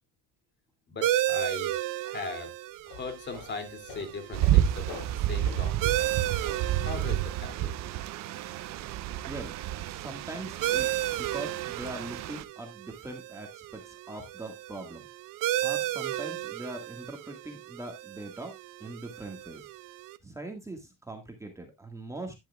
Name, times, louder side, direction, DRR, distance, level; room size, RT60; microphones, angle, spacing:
voice 1, 0.9-1.7 2.0-2.5 2.9-5.9 6.8-7.7, left 4 dB, 30° left, 6 dB, 2.6 m, -39 dB
sound 1, 1.0-20.2, right 14 dB, 75° right, 0.9 m, -34 dB
sound 2, 2.7-7.6, left 4 dB, 85° left, 7.6 m, -48 dB
sound 3, 4.3-12.4, right 12 dB, 55° right, 0.6 m, -30 dB
voice 2, 9.2-9.5 9.9-15.1 15.6-18.5 18.8-19.6 20.2-22.3, right 2 dB, 10° right, 3 dB, 1.7 m, -41 dB
10.5 x 10.5 x 2.3 m, 0.21 s
cardioid pair, 140°, 33 cm